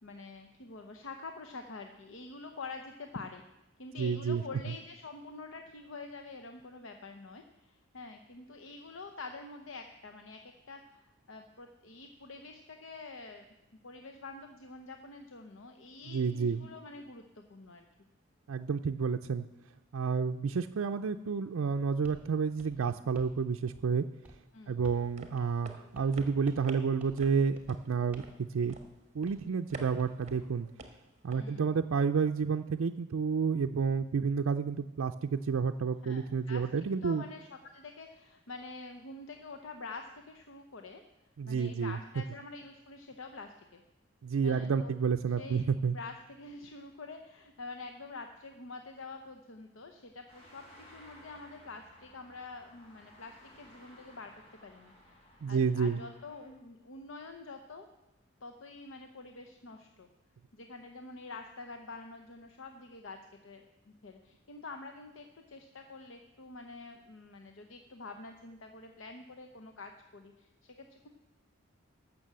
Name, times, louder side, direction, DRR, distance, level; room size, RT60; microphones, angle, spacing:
voice 1, 0.0-3.4 3.8-13.4 13.8-17.9 24.5-24.8 31.3-31.7 36.0-41.0 41.5-43.8 44.4-44.9 45.4-54.3 54.6-55.1 55.5-57.9 58.4-60.1 60.5-71.1, left 3 dB, 70° left, 5 dB, 0.8 m, -47 dB
voice 2, 4.0-4.4 16.1-16.7 18.5-19.5 19.9-24.0 24.7-28.8 29.1-30.7 31.2-37.3 41.4-42.0 44.2-46.0 55.4-56.0, right 5 dB, 85° right, 5 dB, 0.4 m, -30 dB
sound 1, 22.0-22.3 22.6-23.4 23.7-24.0 24.2-24.4 24.8-25.1 25.4-25.5 25.9-26.2 26.5-26.7 27.0-27.3 27.6-27.8 28.1-28.4 28.7-28.9 29.3-30.1, right 1 dB, 5° right, 1.4 m, -54 dB
sound 2, 24.9-31.4, right 2 dB, 30° right, 1.4 m, -50 dB
sound 3, 50.3-56.5, equal, 30° left, 4.2 m, -57 dB
14.0 x 6.1 x 7.5 m, 1.0 s
head